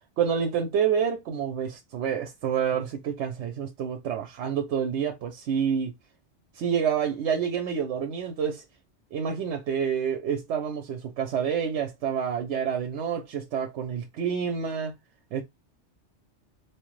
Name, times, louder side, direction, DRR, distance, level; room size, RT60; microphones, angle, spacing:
voice 1, 0.2-5.9 6.6-8.6 9.1-14.9 15.3-15.4, right 7 dB, 85° right, 0.9 m, -28 dB
3.0 x 2.1 x 3.0 m
omnidirectional pair, 1.2 m